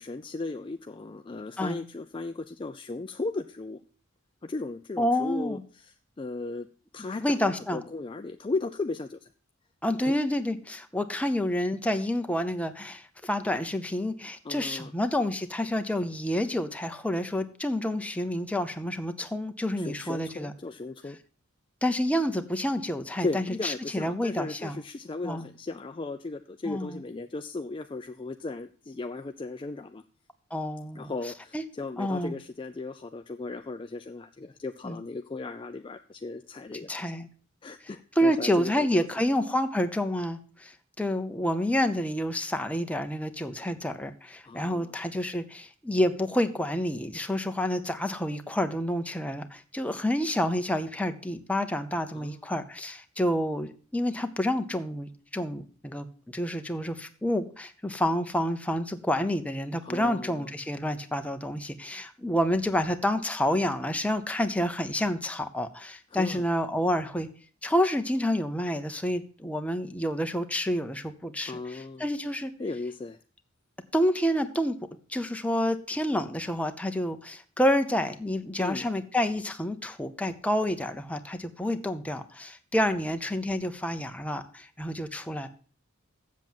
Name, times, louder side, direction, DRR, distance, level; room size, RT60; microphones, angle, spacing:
voice 1, 0.0-3.8 4.4-6.7 6.9-9.3 10.0-10.1 14.4-14.9 19.8-21.2 23.2-30.0 30.9-37.1 37.6-39.1 44.4-44.9 52.1-52.6 59.8-60.5 66.1-66.4 71.5-72.1 72.6-73.2 78.6-78.9, left 3 dB, 25° left, 8 dB, 0.4 m, -36 dB
voice 2, 5.0-5.6 7.2-7.8 9.8-20.5 21.8-24.8 25.2-25.5 26.7-27.0 30.5-31.1 31.5-31.6 32.0-32.3 34.8-35.0 36.9-37.3 38.2-67.3 67.6-72.5 73.9-74.8 75.1-85.5, left 1 dB, 5° left, 7 dB, 0.8 m, -29 dB
7.6 x 7.4 x 7.4 m, 0.41 s
head